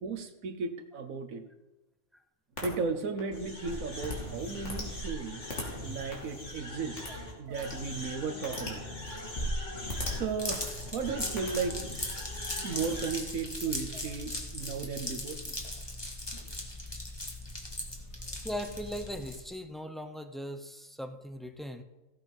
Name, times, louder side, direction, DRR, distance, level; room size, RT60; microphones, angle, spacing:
voice 1, 0.0-1.4 2.6-5.5 5.8-7.0 7.4-8.8 10.1-11.8 12.6-15.6 18.3-18.5, right 5 dB, 85° right, 6 dB, 1.4 m, -35 dB
sound 1, 2.6-2.7 3.2-13.1, left 1 dB, 60° left, 3.0 m, -38 dB
sound 2, 10.4-19.6, left 1 dB, 20° left, 1.9 m, -39 dB
voice 2, 18.3-21.8, equal, ahead, 7 dB, 0.5 m, -39 dB
15.5 x 7.9 x 5.4 m, 1.1 s
omnidirectional pair, 1.4 m